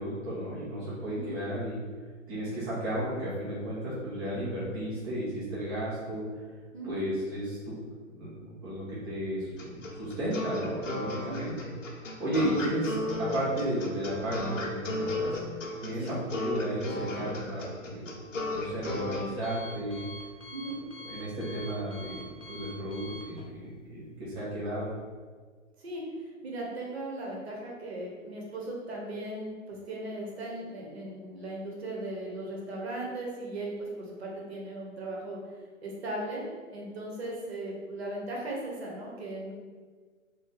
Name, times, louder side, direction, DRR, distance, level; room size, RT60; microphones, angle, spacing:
voice 1, 0.0-1.8 2.3-6.3 6.8-7.7 8.1-11.7 12.2-15.4 15.8-18.1 18.5-20.1 21.0-24.9, right 1 dB, 20° right, -10 dB, 0.6 m, -33 dB
voice 2, 1.0-1.4 6.7-7.1 11.3-11.5 15.9-16.1 20.5-20.8 25.8-26.1 26.4-35.4 35.8-36.4 36.7-39.5, right 1 dB, 50° right, -3 dB, 1.0 m, -37 dB
sound 1, 9.6-19.2, left 2 dB, 65° left, 0.8 m, -34 dB
Alarm, 18.0-24.4, equal, 25° left, 0.4 m, -47 dB
2.9 x 2.3 x 3.8 m, 1.5 s
figure-of-eight pair, 130°, 40 cm